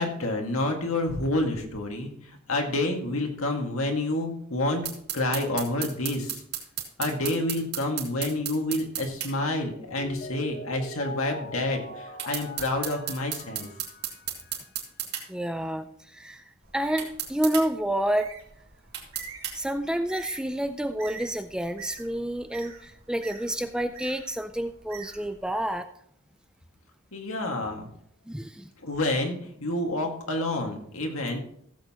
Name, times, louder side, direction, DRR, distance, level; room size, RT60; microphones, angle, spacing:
voice 1, 0.0-4.8 5.1-6.4 7.0-13.7 27.1-27.9 28.8-31.4, left 2 dB, 70° left, 3 dB, 2.0 m, -28 dB
sound 1, 4.8-9.3 12.2-15.2 17.0-17.7 18.9-19.6, right 10 dB, 50° right, 2.6 m, -33 dB
Mallet percussion, 9.7-14.7, left 2 dB, 40° left, 0.9 m, -42 dB
voice 2, 15.3-16.4 16.7-18.3 19.5-25.9 28.3-28.7, right 1 dB, 5° right, 9 dB, 0.4 m, -29 dB
Bird, 16.6-25.7, right 5 dB, 65° right, 2.9 m, -47 dB
16.0 x 7.9 x 3.0 m, 0.68 s
head